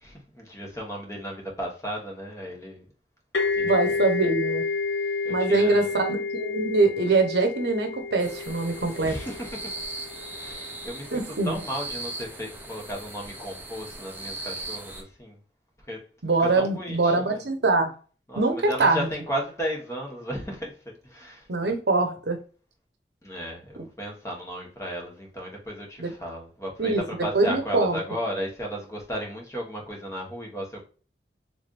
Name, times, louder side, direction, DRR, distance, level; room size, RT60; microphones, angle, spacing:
voice 1, 0.0-2.9 3.5-3.9 4.2-4.3 5.2-5.9 9.0-9.7 10.3-15.4 15.8-16.0 16.4-17.4 18.3-21.7 23.2-30.8, equal, 15° left, 1.1 m, -35 dB
sound 1, 3.3-10.9, left 4 dB, 85° left, 0.8 m, -30 dB
voice 2, 3.6-4.7 5.3-9.2 11.1-11.6 16.2-17.9 18.4-19.1 21.5-22.4 26.0-26.1 26.8-27.0 27.3-28.0, right 3 dB, 75° right, 0.9 m, -23 dB
sound 2, 8.2-15.0, right 2 dB, 10° right, 0.6 m, -39 dB
3.7 x 3.3 x 2.4 m
head